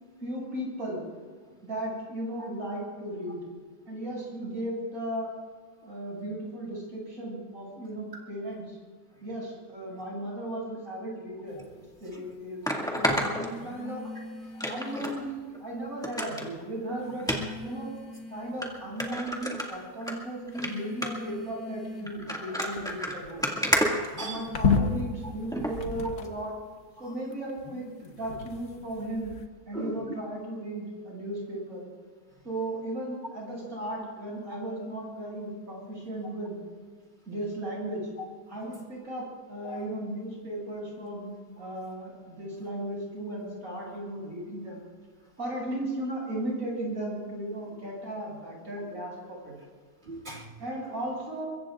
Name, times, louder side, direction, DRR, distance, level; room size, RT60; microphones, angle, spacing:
voice 1, 0.2-1.0 1.6-3.4 3.9-5.3 5.8-8.8 9.2-11.6 12.0-12.7 13.0-14.0 14.6-17.3 17.6-17.9 18.3-23.4 24.2-26.5 27.0-27.9 28.1-29.3 29.7-31.8 32.4-36.6 37.3-38.0 38.5-41.3 41.6-44.8 45.4-49.5 50.6-51.5, right 1 dB, 55° right, -3 dB, 7.4 m, -36 dB
sound 1, 11.5-11.7 13.5-15.3 16.3-16.4 17.0-18.8 19.3-19.8 20.5-26.6 27.3-29.5, left 4 dB, 65° left, 1.7 m, -34 dB
putting in batteries, 11.6-11.7 12.6-14.1 14.6-15.2 15.5-15.6 16.0-16.5 17.2-17.4 18.1-18.2 18.6-18.7 19.0-20.1 20.5-20.7 21.0-21.3 22.1-24.7 25.5-25.7 26.2-26.3, equal, ahead, 2.0 m, -30 dB
voice 2, 23.6-24.5 29.7-30.0 39.6-39.8 50.0-50.5, right 2 dB, 40° right, -1 dB, 2.7 m, -39 dB
23.5 x 23.0 x 2.5 m, 1.5 s
omnidirectional pair, 1.7 m